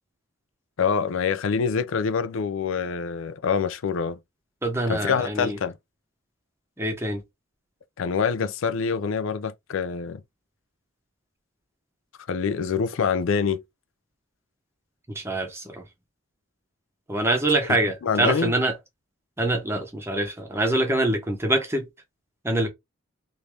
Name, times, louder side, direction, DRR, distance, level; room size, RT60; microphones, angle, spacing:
voice 1, 0.8-4.2 4.9-5.8 8.0-10.2 12.3-13.6 18.0-18.5, left 6 dB, 60° left, 0.4 m, -25 dB
voice 2, 4.6-5.6 6.8-7.2 15.1-15.8 17.1-18.8 19.4-21.9 22.4-22.7, right 1 dB, 10° right, 0.8 m, -25 dB
3.1 x 2.6 x 3.3 m
head